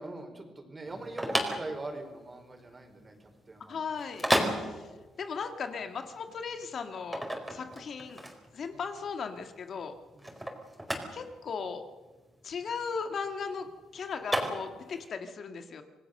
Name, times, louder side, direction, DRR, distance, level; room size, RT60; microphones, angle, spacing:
voice 1, 0.0-3.8 7.5-7.7 10.1-10.4, right 2 dB, 25° right, 5 dB, 4.8 m, -43 dB
sound 1, 0.8-15.1, equal, 5° right, 4.6 m, -34 dB
voice 2, 3.7-4.9 5.2-7.2 7.5-8.2 8.5-9.9 11.1-11.8 12.4-15.8, left 5 dB, 55° left, 7 dB, 1.9 m, -37 dB
27.0 x 18.5 x 6.7 m, 1.2 s
cardioid pair, 90°, 0 cm